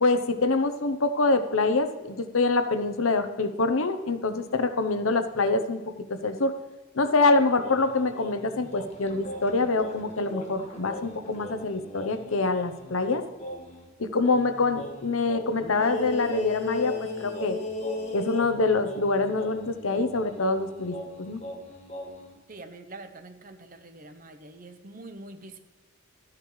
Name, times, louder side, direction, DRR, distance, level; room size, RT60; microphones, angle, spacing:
voice 1, 0.0-5.8 6.1-6.5 6.9-13.2 14.0-17.6 18.1-21.4, left 3 dB, 85° left, 9 dB, 0.9 m, -25 dB
sound 1, 7.5-13.8 14.2-22.3, left 2 dB, 30° left, 1.7 m, -37 dB
voice 2, 22.5-25.6, right 2 dB, 40° right, 8 dB, 0.9 m, -45 dB
13.0 x 9.7 x 3.2 m, 1.2 s
head